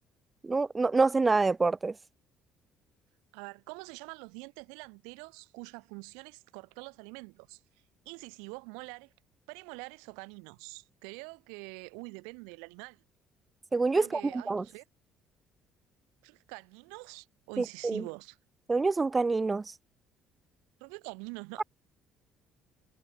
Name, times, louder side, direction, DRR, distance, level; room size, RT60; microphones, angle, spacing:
voice 1, 0.4-2.0 13.7-14.6 17.6-18.0 18.7-19.7, right 3 dB, 25° right, 0.5 m, -27 dB
voice 2, 3.3-7.6 8.1-9.1 9.5-13.0 14.0-14.8 16.2-18.4 20.8-21.6, right 38 dB, 85° right, 1.7 m, -45 dB
hypercardioid pair, 65°, 0 cm